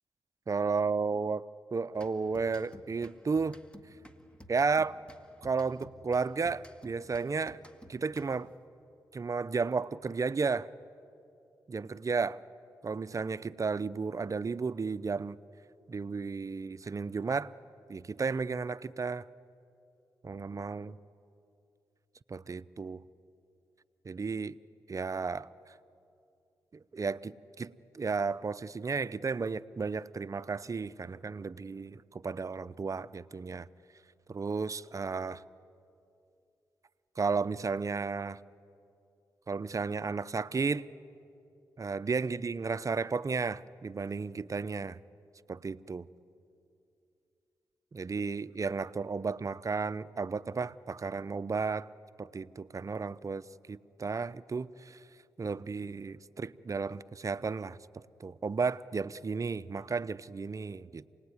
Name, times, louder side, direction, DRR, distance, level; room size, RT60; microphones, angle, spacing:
voice 1, 0.5-1.4 1.7-3.6 4.5-5.0 5.4-7.6 7.9-8.5 9.1-10.7 11.7-12.4 12.8-15.4 15.9-17.5 17.9-19.3 20.2-21.0 22.3-23.0 24.0-24.6 24.9-25.5 26.7-33.7 34.3-35.4 37.2-38.4 39.5-40.9 41.8-45.0 45.5-46.1 47.9-51.9 52.2-55.0 55.4-57.8 58.2-61.1, right 4 dB, 40° right, 16 dB, 0.7 m, -33 dB
sound 1, 2.0-8.6, equal, 15° left, 1.9 m, -55 dB
28.0 x 19.0 x 9.7 m, 2.7 s
supercardioid pair, 45°, 8 cm